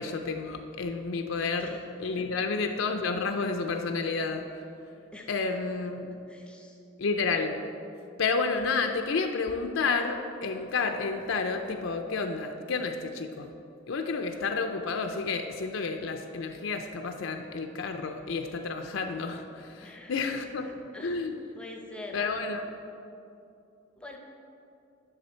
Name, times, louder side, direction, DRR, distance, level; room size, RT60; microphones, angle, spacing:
voice 1, 0.0-4.6 5.3-6.2 7.0-7.5 8.2-13.5 13.9-21.4 22.1-22.7, left 4 dB, 70° left, 5 dB, 0.5 m, -30 dB
voice 2, 6.0-6.8 19.8-20.3 20.6-21.2 21.6-22.2 24.0-24.2, left 2 dB, 5° left, 1 dB, 0.7 m, -46 dB
10.5 x 6.4 x 4.4 m, 2.7 s
head